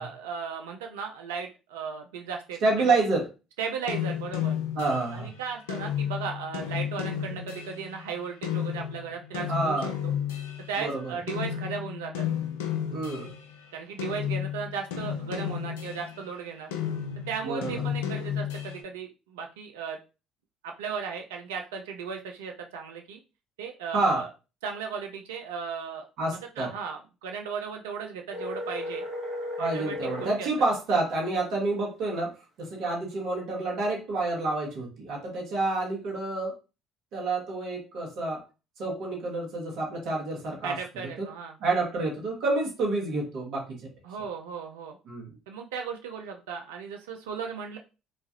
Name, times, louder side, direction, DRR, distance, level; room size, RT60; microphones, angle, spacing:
voice 1, 0.0-3.1 3.6-4.6 5.1-10.1 10.7-12.2 13.7-16.7 17.3-20.0 20.6-23.2 23.6-24.3 24.6-26.1 26.6-29.0 29.6-30.5 40.6-41.5 44.0-45.0 45.5-47.8, right 6 dB, 80° right, 3 dB, 0.3 m, -36 dB
voice 2, 2.6-3.3 4.7-5.3 9.5-9.9 10.8-11.1 12.9-13.3 17.4-17.8 23.9-24.2 26.2-26.7 29.6-32.3 32.6-36.5 37.1-38.4 38.8-41.3 41.6-43.6 45.1-45.3, right 2 dB, 65° right, -2 dB, 1.1 m, -28 dB
sound 1, 3.9-11.0 11.3-13.6 14.0-16.3 16.7-18.8, left 9 dB, 80° left, 0.4 m, -33 dB
sound 2, 28.3-30.4, left 1 dB, 40° right, 1.0 m, -34 dB
3.1 x 2.3 x 2.7 m, 0.31 s
hypercardioid pair, 55°, 0 cm